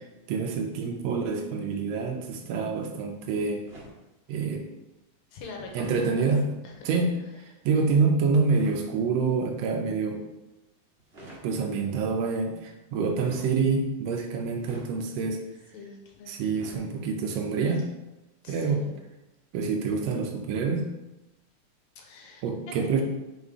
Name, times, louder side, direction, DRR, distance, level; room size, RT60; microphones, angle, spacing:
voice 1, 0.3-3.6 4.3-4.7 5.7-6.5 6.8-7.1 7.6-10.2 11.4-15.4 16.3-17.9 18.5-18.8 19.5-20.9 22.4-23.0, right 4 dB, 90° right, 2 dB, 1.4 m, -27 dB
sound 1, 3.6-4.1 5.7-6.1 8.5-8.8 11.0-11.5 13.1-13.5 14.6-14.9 16.5-16.9, right 1 dB, 70° right, 0.5 m, -45 dB
voice 2, 5.3-6.3 6.6-6.9 7.2-7.4 15.7-16.3 17.8-17.9 18.4-19.0 22.0-23.0, left 3 dB, 75° left, 1 dB, 1.9 m, -44 dB
5.2 x 4.1 x 4.7 m, 1.0 s
omnidirectional pair, 3.7 m